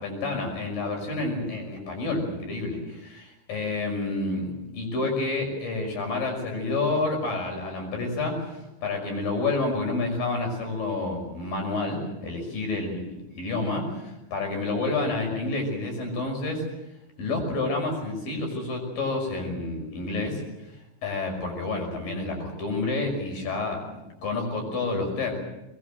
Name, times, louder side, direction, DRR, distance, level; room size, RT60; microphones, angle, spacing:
voice 1, 0.0-16.6 17.2-20.4 21.0-25.3, left 3 dB, 45° left, 3 dB, 7.3 m, -29 dB
23.5 x 21.5 x 7.7 m, 0.96 s
omnidirectional pair, 5.6 m